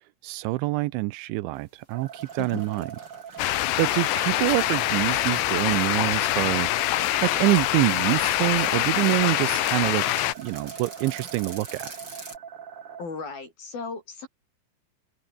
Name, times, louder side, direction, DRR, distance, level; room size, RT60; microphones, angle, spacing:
voice 1, 0.2-2.9 3.8-10.1 10.4-11.9, right 19 dB, 80° right, 3.0 m, -26 dB
sound 1, 1.9-12.4, right 3 dB, 20° right, 5.9 m, -44 dB
sound 2, 1.9-13.1, right 8 dB, 55° right, 1.5 m, -42 dB
voice 2, 2.4-2.7 13.0-14.3, left 4 dB, 50° left, 9.7 m, -36 dB
sound 3, 3.4-10.3, left 16 dB, 75° left, 3.1 m, -25 dB
omnidirectional pair, 5.6 m